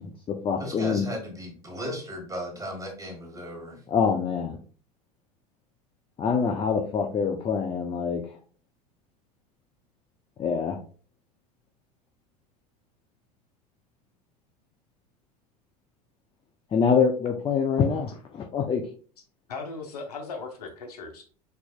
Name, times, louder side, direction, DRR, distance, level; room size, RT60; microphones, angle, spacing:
voice 1, 0.0-1.1 3.9-4.6 6.2-8.3 10.4-10.8 16.7-18.8, left 6 dB, 25° left, 3 dB, 0.7 m, -25 dB
voice 2, 0.6-3.8, equal, 15° right, 1 dB, 1.7 m, -36 dB
voice 3, 19.5-21.3, left 4 dB, 75° left, 3 dB, 1.1 m, -37 dB
4.6 x 4.0 x 2.4 m, 0.41 s
figure-of-eight pair, 80°, 20 cm